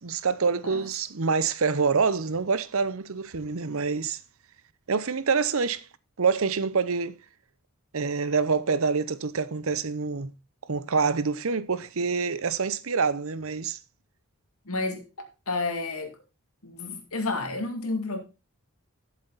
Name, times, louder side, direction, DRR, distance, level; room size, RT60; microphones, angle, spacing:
voice 1, 0.0-4.2 4.9-5.8 6.2-7.1 7.9-10.3 10.7-13.8, right 5 dB, 65° right, 0.7 m, -26 dB
voice 2, 14.6-16.2 16.6-18.2, left 3 dB, 75° left, 2.3 m, -31 dB
11.5 x 7.6 x 4.0 m
head